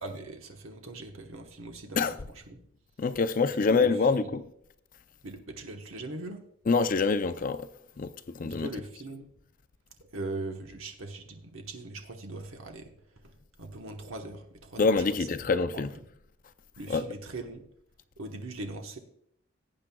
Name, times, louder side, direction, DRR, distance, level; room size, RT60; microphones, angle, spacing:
voice 1, 0.0-2.1 2.3-2.6 3.5-4.3 5.2-6.4 8.4-9.3 10.1-16.0 16.8-17.6 18.2-19.0, right 2 dB, 80° right, 1.1 m, -41 dB
voice 2, 3.0-4.4 6.7-7.7 8.0-8.7 14.8-15.9 16.9-17.0, left 4 dB, 40° left, 0.5 m, -26 dB
18.0 x 8.8 x 2.3 m
head